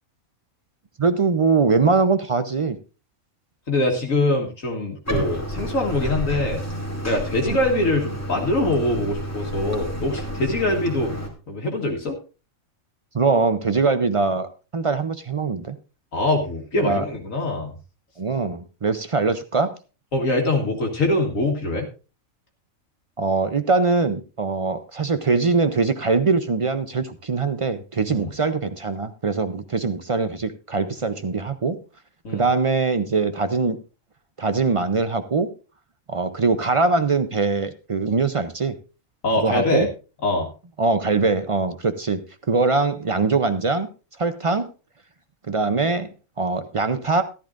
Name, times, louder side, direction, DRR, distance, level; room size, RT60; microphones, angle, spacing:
voice 1, 1.0-2.8 7.5-7.6 13.1-15.8 16.7-17.0 18.2-19.7 23.2-31.8 32.3-33.8 34.4-35.5 36.1-38.8 39.4-39.9 40.8-42.2 42.5-43.9 44.2-44.7 45.5-46.1 46.4-47.2, right 4 dB, 55° right, 11 dB, 0.3 m, -22 dB
voice 2, 3.7-6.6 7.0-11.2 11.5-12.2 16.1-17.8 20.1-21.9 28.1-28.3 32.2-32.4 39.2-39.9 40.2-40.5, left 2 dB, 70° left, 1 dB, 2.0 m, -23 dB
Bathtub (filling or washing), 5.1-11.3, equal, 10° left, 2.3 m, -30 dB
14.0 x 12.5 x 2.5 m, 0.32 s
omnidirectional pair, 1.4 m